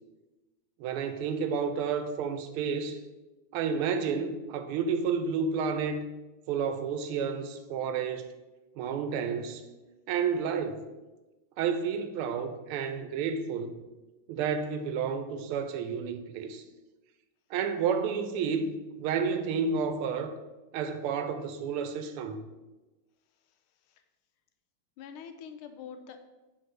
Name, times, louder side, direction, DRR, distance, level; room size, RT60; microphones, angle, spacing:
voice 1, 0.8-3.0 3.5-6.1 6.5-8.3 8.8-9.6 10.1-10.9 11.6-13.8 14.3-16.7 17.5-20.3 20.7-22.5, right 6 dB, 90° right, 1.5 m, -31 dB
voice 2, 23.4-24.0 25.0-26.2, left 7 dB, 80° left, 1.5 m, -46 dB
5.4 x 3.8 x 5.9 m
omnidirectional pair, 2.4 m